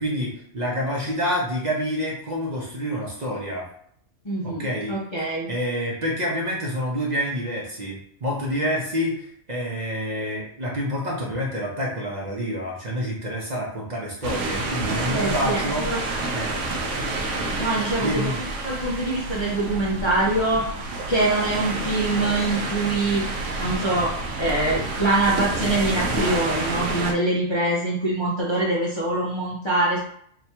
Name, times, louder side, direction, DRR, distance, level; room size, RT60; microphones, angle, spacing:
voice 1, 0.0-3.7 4.4-4.9 5.5-15.9 16.3-16.7 18.0-18.4, equal, 45° right, -3 dB, 0.7 m, -28 dB
voice 2, 4.2-5.5 15.1-16.0 17.6-18.3 18.6-20.7 21.1-23.2 23.6-24.1 24.4-30.0, right 2 dB, 35° left, -6 dB, 0.5 m, -24 dB
sound 1, 14.2-27.1, right 2 dB, 75° right, 0.9 m, -29 dB
2.8 x 2.3 x 4.2 m, 0.67 s
omnidirectional pair, 1.3 m